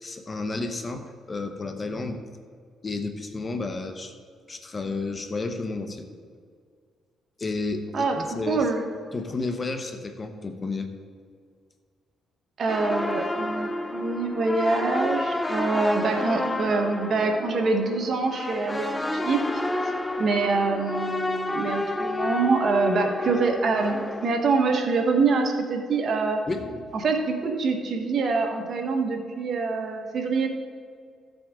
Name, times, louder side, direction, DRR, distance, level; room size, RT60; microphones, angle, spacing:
voice 1, 0.0-2.2 2.8-4.2 4.5-6.1 7.4-8.7 9.1-10.9 26.5-26.8, left 3 dB, 30° left, 6 dB, 1.0 m, -31 dB
voice 2, 8.5-8.8 12.6-19.4 20.2-26.5 27.0-30.5, right 4 dB, 55° right, 4 dB, 1.4 m, -25 dB
sound 1, 12.7-24.3, left 2 dB, 10° left, 0.7 m, -30 dB
15.0 x 7.8 x 3.7 m, 2.1 s
cardioid pair, 90°, 0 cm